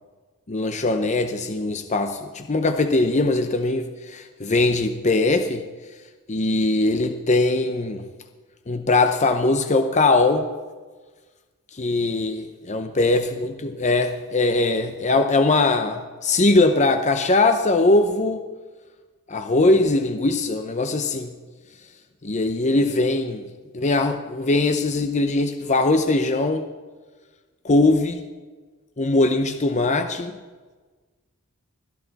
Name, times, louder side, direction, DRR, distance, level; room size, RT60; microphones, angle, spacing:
voice 1, 0.5-5.6 6.3-8.0 8.7-10.5 11.7-18.4 19.3-21.3 22.2-23.4 23.7-26.7 27.6-28.2 29.0-30.4, left 2 dB, 30° left, 7 dB, 0.7 m, -21 dB
21.5 x 13.5 x 4.1 m, 1.4 s
head